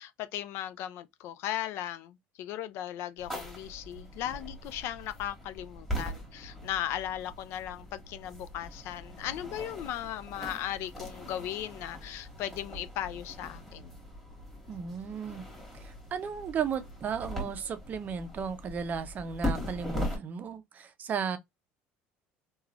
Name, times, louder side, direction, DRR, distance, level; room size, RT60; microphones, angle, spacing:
voice 1, 0.0-14.0, left 12 dB, 65° left, 0.4 m, -37 dB
sound 1, 3.2-20.2, equal, 5° left, 1.5 m, -40 dB
voice 2, 14.7-15.4 15.7-21.4, right 6 dB, 35° right, 0.5 m, -35 dB
3.1 x 2.3 x 2.4 m
supercardioid pair, 115°, 5 cm